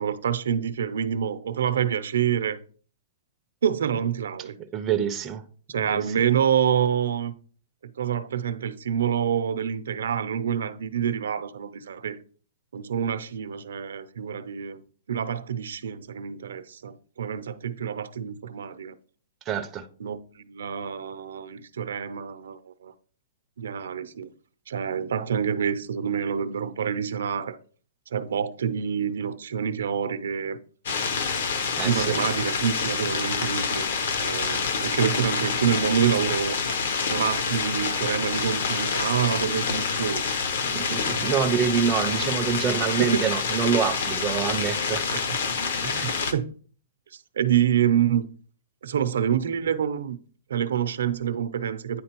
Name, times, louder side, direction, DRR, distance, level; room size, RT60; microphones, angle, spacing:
voice 1, 0.0-2.6 3.6-4.6 5.7-7.3 8.0-12.2 12.7-14.8 15.1-19.0 20.0-22.9 23.6-24.3 24.7-27.6 28.1-30.6 31.8-33.9 34.2-36.6 37.1-40.4 41.1-41.2 43.0-43.3 45.1-45.4 46.0-46.5 47.1-48.3 48.8-50.2 50.5-52.0, right 8 dB, 85° right, 0.5 m, -27 dB
voice 2, 4.7-5.4 5.8-6.2 19.5-19.9 31.8-32.2 40.6-45.0 45.8-46.3, right 7 dB, 15° right, 0.4 m, -26 dB
sound 1, 30.9-46.3, left 5 dB, 60° left, 0.7 m, -27 dB
9.4 x 3.7 x 2.9 m
hypercardioid pair, 170°, 0 cm